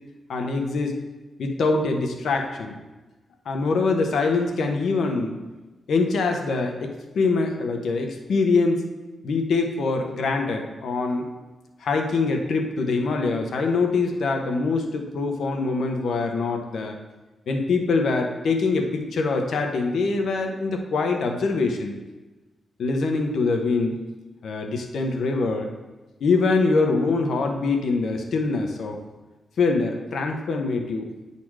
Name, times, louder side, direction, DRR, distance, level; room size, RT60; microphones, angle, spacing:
voice 1, 0.3-1.0 1.4-2.8 3.4-5.4 5.9-8.8 9.2-11.3 11.8-17.0 17.5-21.9 22.8-24.0 24.4-25.7 26.2-29.0 29.6-31.1, left 3 dB, 75° left, 4 dB, 1.0 m, -24 dB
8.7 x 4.2 x 4.8 m, 1.2 s
cardioid pair, 105°, 0 cm